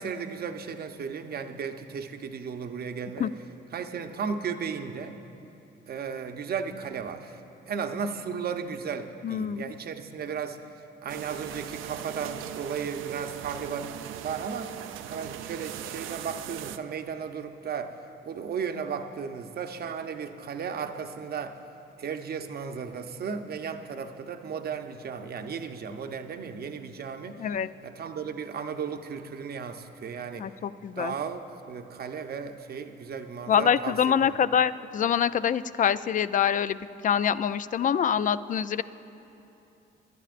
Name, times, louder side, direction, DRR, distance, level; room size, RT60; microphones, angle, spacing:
voice 1, 0.0-3.3 3.7-5.2 5.9-7.4 7.7-10.6 11.0-14.7 15.1-18.0 18.2-21.6 22.0-27.5 27.8-30.5 31.0-34.4, right 6 dB, 50° right, 7 dB, 0.7 m, -35 dB
voice 2, 9.2-9.7 27.4-27.7 30.4-31.1 33.5-36.8 37.0-38.8, left 8 dB, 40° left, 15 dB, 0.4 m, -25 dB
sound 1, 11.1-16.8, right 11 dB, 85° right, 0.4 m, -39 dB
23.0 x 11.5 x 2.5 m, 2.9 s
cardioid pair, 90°, 20 cm